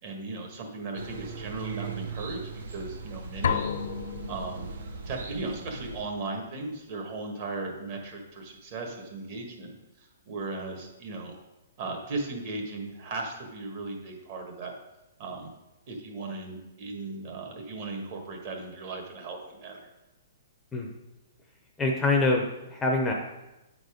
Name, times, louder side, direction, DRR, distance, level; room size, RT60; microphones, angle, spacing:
voice 1, 0.0-2.4 2.7-3.6 4.3-4.7 5.0-11.3 11.8-14.8 15.2-15.5 15.9-19.9, right 3 dB, 40° right, 2 dB, 1.5 m, -37 dB
sound 1, 0.9-6.0, right 5 dB, 65° right, 1.0 m, -39 dB
sound 2, 3.4-5.3, left 7 dB, 70° left, 0.5 m, -31 dB
voice 2, 21.8-23.1, left 2 dB, 10° left, 1 dB, 0.7 m, -25 dB
8.8 x 4.0 x 5.0 m, 0.99 s
hypercardioid pair, 160°, 0 cm